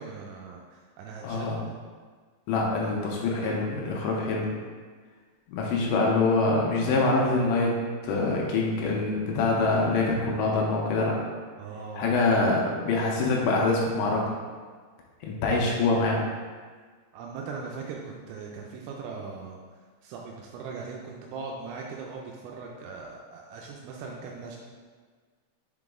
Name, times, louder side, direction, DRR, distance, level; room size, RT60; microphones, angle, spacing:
voice 1, 0.0-1.5 11.6-12.1 17.1-24.6, right 4 dB, 85° right, -1 dB, 2.9 m, -40 dB
voice 2, 1.2-1.6 2.5-4.5 5.5-7.8 8.0-11.2 11.9-14.3 15.2-16.2, left 3 dB, 85° left, -2 dB, 2.8 m, -25 dB
6.8 x 3.9 x 3.6 m, 1.5 s
omnidirectional pair, 5.3 m